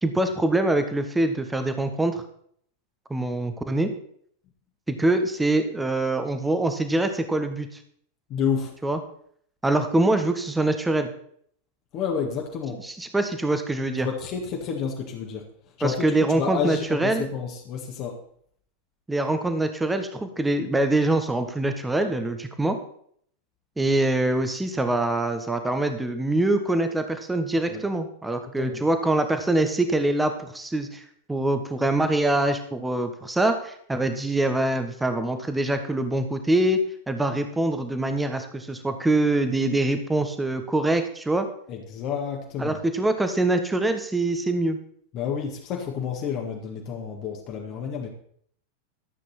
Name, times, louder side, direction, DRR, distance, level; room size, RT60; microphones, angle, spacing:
voice 1, 0.0-2.2 3.1-3.9 4.9-7.7 8.8-9.0 9.6-11.1 12.8-14.1 15.8-17.3 19.1-22.8 23.8-41.5 42.6-44.8, right 2 dB, 5° right, 7 dB, 1.2 m, -24 dB
voice 2, 8.3-8.8 11.9-12.8 14.0-15.5 15.8-18.2 27.7-27.8 28.6-28.9 41.7-42.8 45.1-48.1, left 6 dB, 35° left, 1 dB, 1.7 m, -30 dB
13.5 x 8.4 x 4.3 m, 0.63 s
figure-of-eight pair, 90°, 0 cm